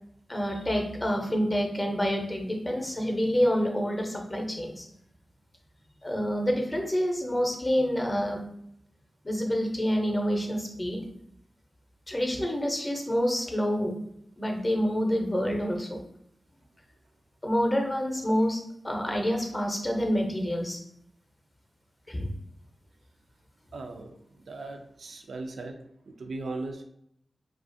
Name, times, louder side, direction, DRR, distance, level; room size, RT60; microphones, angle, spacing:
voice 1, 0.3-4.9 6.0-8.4 9.2-11.0 12.1-13.9 14.4-16.0 17.4-20.8 22.1-22.3, equal, 25° left, 2 dB, 0.6 m, -27 dB
voice 2, 23.7-24.1 24.5-25.8 26.2-26.8, right 3 dB, 80° right, 4 dB, 0.3 m, -37 dB
2.4 x 2.4 x 2.6 m, 0.75 s
cardioid pair, 55°, 0 cm